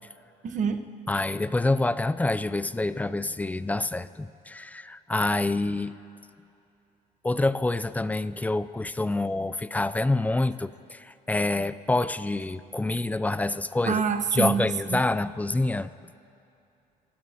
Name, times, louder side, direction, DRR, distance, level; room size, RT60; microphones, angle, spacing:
voice 1, 0.4-0.8 13.8-15.0, right 6 dB, 45° right, 7 dB, 1.2 m, -26 dB
voice 2, 1.1-6.0 7.2-14.0 14.3-15.9, left 2 dB, 10° left, 15 dB, 0.4 m, -27 dB
29.5 x 16.0 x 2.9 m, 2.6 s
cardioid pair, 110°, 17 cm